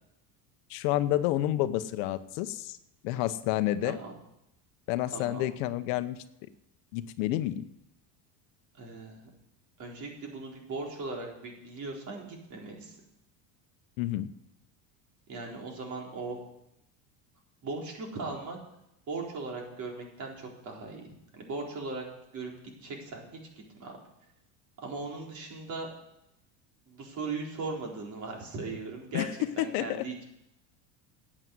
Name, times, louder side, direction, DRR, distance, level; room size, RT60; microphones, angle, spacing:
voice 1, 0.7-2.8 3.0-4.0 4.9-6.2 6.9-7.6 14.0-14.3 29.1-29.3 29.6-30.0, left 14 dB, 75° left, 12 dB, 1.0 m, -29 dB
voice 2, 3.8-4.2 5.1-5.5 8.8-9.3 9.8-13.0 15.3-16.4 17.6-18.6 19.1-21.1 21.3-22.0 22.3-22.5 22.8-23.4 23.7-24.0 24.8-25.9 26.9-29.3 29.6-30.2, right 3 dB, 45° right, 0 dB, 4.2 m, -38 dB
11.0 x 8.9 x 7.8 m, 0.85 s
cardioid pair, 130°, 40 cm